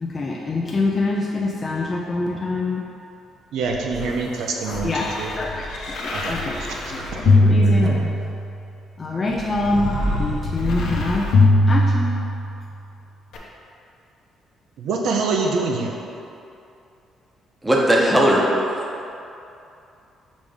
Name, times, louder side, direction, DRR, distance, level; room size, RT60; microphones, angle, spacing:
voice 1, 0.0-2.8 4.0-4.1 4.8-5.1 5.4-7.9 9.0-11.3 11.7-12.1, left 2 dB, 25° left, -3 dB, 0.4 m, -25 dB
voice 2, 3.5-4.9 5.2-5.3 6.1-7.7 14.8-15.9, right 4 dB, 75° right, 0 dB, 0.5 m, -26 dB
sound 1, 3.6-8.5 9.3-12.6 13.3-13.4, left 1 dB, 70° left, 0.8 m, -21 dB
voice 3, 17.6-18.4 18.7-18.8, right 1 dB, 10° right, -3 dB, 0.8 m, -18 dB
5.0 x 3.4 x 5.4 m, 2.7 s
cardioid pair, 130°, 0 cm